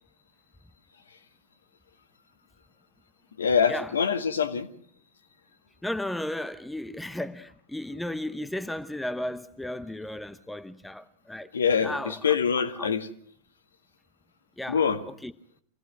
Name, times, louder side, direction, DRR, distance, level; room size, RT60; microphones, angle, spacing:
voice 1, 3.4-4.7 11.5-13.1 14.7-15.0, left 6 dB, 70° left, 1.7 m, -24 dB
voice 2, 5.8-11.5 11.8-12.2 12.8-12.9 14.6-14.8 15.2-15.3, left 1 dB, 5° left, 0.9 m, -34 dB
25.5 x 18.0 x 6.1 m
figure-of-eight pair, 90°, 0 cm